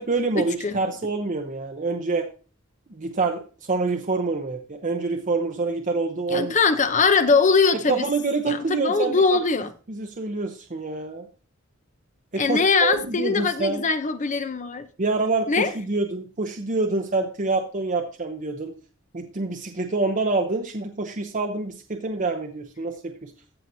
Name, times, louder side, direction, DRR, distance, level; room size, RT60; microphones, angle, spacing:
voice 1, 0.0-2.3 2.9-6.6 7.9-9.4 9.9-11.3 12.3-13.8 15.0-18.7 19.1-23.3, right 3 dB, 40° right, 0.8 m, -26 dB
voice 2, 6.3-8.1 8.4-9.7 12.4-14.9 15.5-15.7, left 4 dB, 40° left, 0.8 m, -21 dB
14.5 x 5.9 x 2.7 m
head